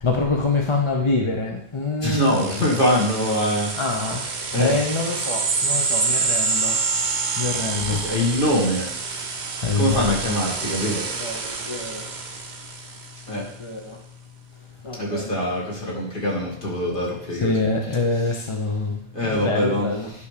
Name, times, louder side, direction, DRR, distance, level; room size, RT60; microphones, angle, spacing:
voice 1, 0.0-2.3 3.7-6.8 7.4-8.0 9.6-10.3 10.5-12.1 13.3-14.0 14.8-15.4 17.3-20.1, left 3 dB, 30° left, 2 dB, 0.8 m, -26 dB
voice 2, 2.0-3.7 4.5-4.8 7.8-8.9 9.8-11.1 13.3-13.5 14.9-17.5 19.1-19.9, left 1 dB, 55° left, -3 dB, 2.4 m, -23 dB
sound 1, 2.1-13.2, right 4 dB, 50° right, 0.9 m, -27 dB
10.0 x 3.4 x 6.7 m, 0.68 s
omnidirectional pair, 1.0 m